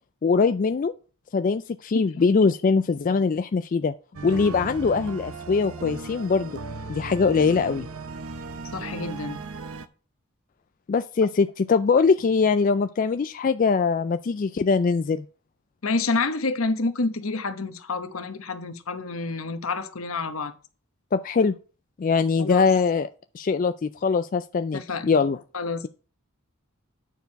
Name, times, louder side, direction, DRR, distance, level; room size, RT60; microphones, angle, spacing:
voice 1, 0.2-0.9 1.3-3.9 4.2-6.6 6.9-7.9 10.9-15.2 21.1-21.5 22.0-23.1 23.3-25.4, left 5 dB, 40° left, 0.3 m, -22 dB
sound 1, 4.1-9.9, right 3 dB, 90° right, 0.7 m, -36 dB
voice 2, 8.7-9.4 15.8-20.5 22.4-22.7 24.7-25.1 25.5-25.9, left 3 dB, 80° left, 1.0 m, -28 dB
9.2 x 4.6 x 5.2 m
head